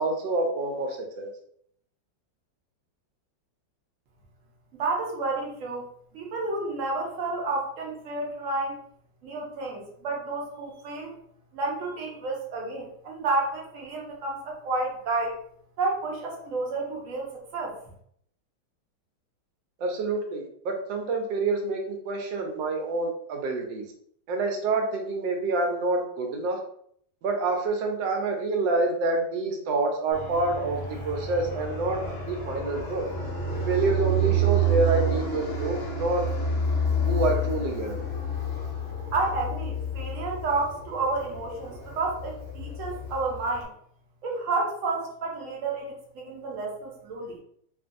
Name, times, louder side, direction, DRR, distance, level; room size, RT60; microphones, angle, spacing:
voice 1, 0.0-1.3 19.8-23.8 24.3-26.6 27.2-32.0 32.3-33.1 33.7-36.2 37.1-38.0, right 3 dB, 80° right, 3 dB, 1.2 m, -27 dB
voice 2, 4.8-5.9 6.1-8.8 9.2-11.2 11.5-15.4 15.8-17.7 39.1-43.7 44.2-47.4, right 3 dB, 60° right, 0 dB, 0.8 m, -30 dB
Fixed-wing aircraft airplane, 30.1-43.6, right 2 dB, 70° left, 0.6 m, -29 dB
2.9 x 2.5 x 2.5 m, 0.66 s
omnidirectional pair, 2.1 m